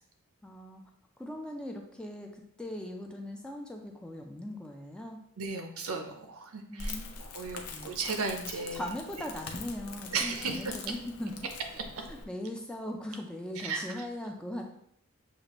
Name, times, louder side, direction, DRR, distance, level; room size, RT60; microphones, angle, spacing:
voice 1, 0.4-0.8 1.2-5.2 6.7-7.2 7.6-7.9 8.5-11.5 12.0-14.6, left 1 dB, 5° left, 2 dB, 0.4 m, -40 dB
voice 2, 5.4-8.8 10.1-10.6 13.6-14.0, right 4 dB, 70° right, 5 dB, 0.7 m, -35 dB
Crackle, 6.8-12.2, left 3 dB, 80° left, 0.6 m, -43 dB
6.4 x 2.5 x 3.0 m, 0.71 s
head